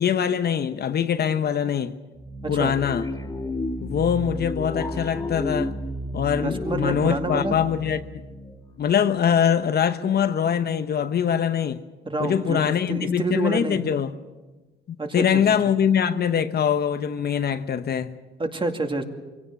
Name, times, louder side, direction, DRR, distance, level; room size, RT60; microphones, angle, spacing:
voice 1, 0.0-2.0 2.5-3.0 3.8-5.7 6.1-8.1 8.8-11.8 12.2-14.1 14.9-18.2, left 8 dB, 55° left, 0.9 m, -23 dB
sound 1, 2.1-9.3, left 1 dB, 15° left, 2.5 m, -32 dB
voice 2, 6.4-7.6 12.1-13.8 15.0-15.4 18.4-19.0, right 3 dB, 25° right, 2.3 m, -28 dB
23.0 x 17.0 x 8.1 m
cardioid pair, 90°, 20 cm